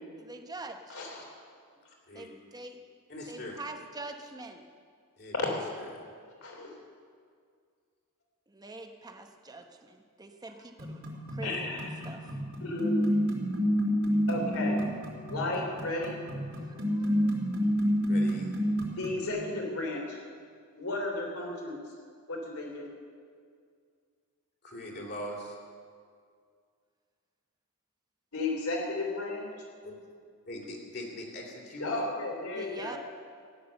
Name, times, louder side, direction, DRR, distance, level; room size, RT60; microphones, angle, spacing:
voice 1, 0.2-1.0 2.1-2.8 3.3-4.6 8.5-11.0 11.3-12.3 16.5-17.6 32.5-33.0, right 2 dB, 15° right, 4 dB, 0.9 m, -45 dB
voice 2, 0.9-1.2 5.3-5.5 6.4-6.7 11.4-12.0 12.6-13.0 14.3-14.8 15.3-16.1 19.0-20.2 20.7-21.8 22.3-22.9 28.3-29.5 31.8-33.0, left 2 dB, 70° left, 0 dB, 3.4 m, -33 dB
voice 3, 3.1-3.6 5.2-5.6 18.0-18.5 24.6-25.5 29.8-29.9 30.5-31.9, left 1 dB, 45° left, -1 dB, 2.9 m, -41 dB
sound 1, 10.8-19.3, equal, 70° right, 3.9 m, -29 dB
15.5 x 10.0 x 6.9 m, 2.1 s
head